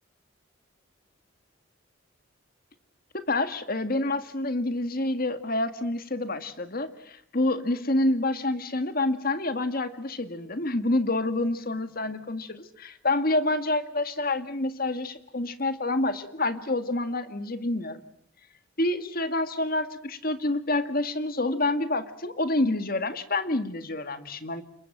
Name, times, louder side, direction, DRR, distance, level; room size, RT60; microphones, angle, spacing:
voice 1, 3.1-18.0 18.8-24.6, left 2 dB, 45° left, 10 dB, 1.9 m, -28 dB
27.5 x 23.0 x 7.4 m, 0.68 s
head